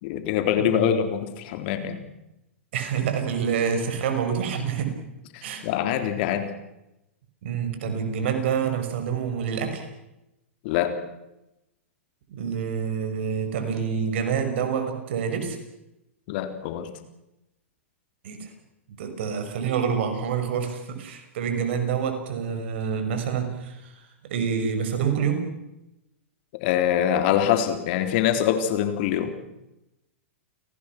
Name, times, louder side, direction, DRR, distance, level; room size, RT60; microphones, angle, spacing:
voice 1, 0.0-2.0 5.3-6.5 10.6-10.9 16.3-16.9 26.6-29.3, left 10 dB, 50° left, 8 dB, 3.7 m, -24 dB
voice 2, 0.6-0.9 2.7-4.9 5.4-5.7 7.4-9.9 12.3-15.6 18.2-18.5 19.0-23.9 24.2-25.4, right 7 dB, 60° right, 6 dB, 6.0 m, -27 dB
30.0 x 19.5 x 6.1 m, 0.90 s
hypercardioid pair, 110°, 7 cm